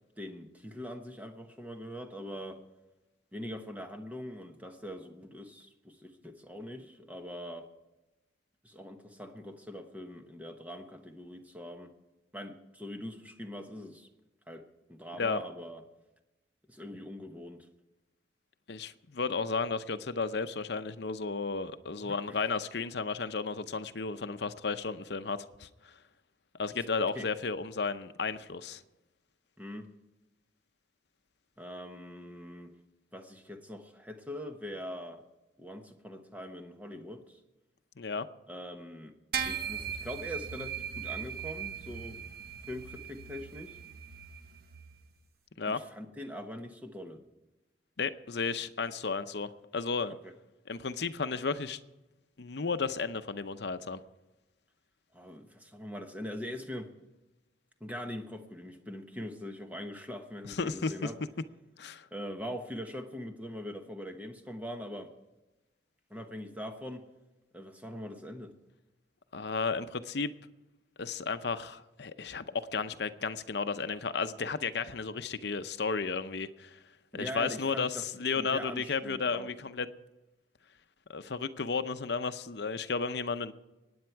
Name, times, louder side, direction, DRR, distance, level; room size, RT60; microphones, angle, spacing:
voice 1, 0.2-2.6 3.3-7.7 8.6-11.9 12.3-14.1 14.5-15.8 16.7-17.7 22.0-22.4 27.1-27.3 29.6-29.9 31.6-32.7 33.1-35.2 35.6-37.4 38.5-39.1 39.5-42.2 42.7-43.8 45.7-47.2 50.2-50.3 55.1-56.9 57.8-61.2 62.1-65.1 66.1-67.1 67.5-68.5 77.1-78.0 78.3-79.5, equal, 10° right, 5 dB, 1.1 m, -42 dB
voice 2, 18.7-26.0 26.6-28.8 38.0-38.3 45.6-45.8 48.0-50.2 50.7-51.8 52.4-54.0 60.4-61.1 61.8-62.1 69.3-70.3 71.0-76.8 77.1-79.9 81.1-83.5, left 4 dB, 65° left, 11 dB, 0.7 m, -33 dB
sound 1, 39.3-45.0, right 7 dB, 55° right, 1.0 m, -39 dB
23.5 x 9.6 x 4.6 m, 1.1 s
head